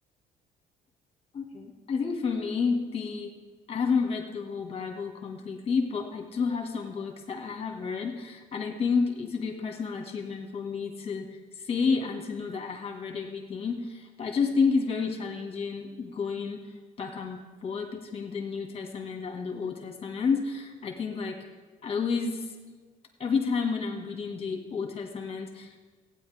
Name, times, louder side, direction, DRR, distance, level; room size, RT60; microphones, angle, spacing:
voice 1, 1.3-3.3 3.7-11.3 11.6-16.6 17.0-21.4 21.8-22.5 23.2-25.7, left 5 dB, 35° left, 2 dB, 1.8 m, -30 dB
15.5 x 9.3 x 3.5 m, 1.4 s
cardioid pair, 110°, 17 cm